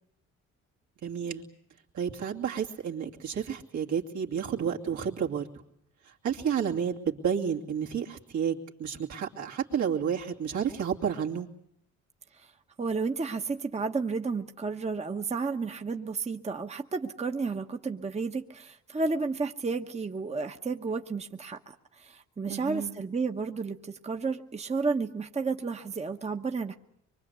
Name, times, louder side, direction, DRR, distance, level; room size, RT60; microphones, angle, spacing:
voice 1, 1.0-1.4 1.9-5.5 6.2-11.5 22.5-22.9, right 7 dB, 70° right, 0 dB, 2.7 m, -31 dB
voice 2, 12.8-26.7, right 4 dB, 20° right, 5 dB, 1.1 m, -32 dB
24.5 x 23.0 x 8.2 m, 0.73 s
cardioid pair, 90°, 30 cm